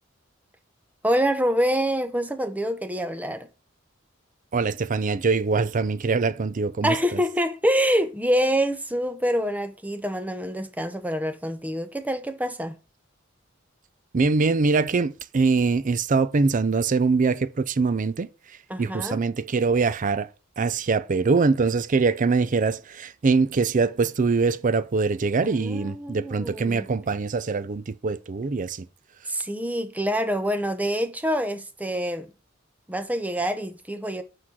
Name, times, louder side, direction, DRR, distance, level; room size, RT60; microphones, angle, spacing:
voice 1, 1.0-3.5 6.8-12.8 18.7-19.2 25.4-26.9 29.3-32.3 32.9-34.2, equal, 10° right, 0.7 m, -26 dB
voice 2, 4.5-7.2 14.1-18.3 18.8-20.3 20.6-28.9, right 4 dB, 40° right, 0.5 m, -23 dB
6.0 x 4.8 x 6.2 m
head